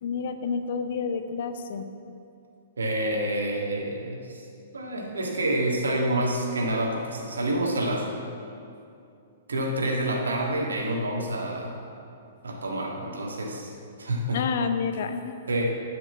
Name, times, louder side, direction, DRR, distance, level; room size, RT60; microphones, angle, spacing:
voice 1, 0.0-1.9 14.3-15.4, left 5 dB, 55° left, 9 dB, 0.6 m, -29 dB
voice 2, 2.8-4.4 4.7-8.1 9.5-11.8 12.4-13.7 14.0-14.4 15.5-15.6, right 1 dB, 70° right, 0 dB, 1.6 m, -28 dB
10.5 x 5.3 x 7.1 m, 2.5 s
figure-of-eight pair, 110°, 0 cm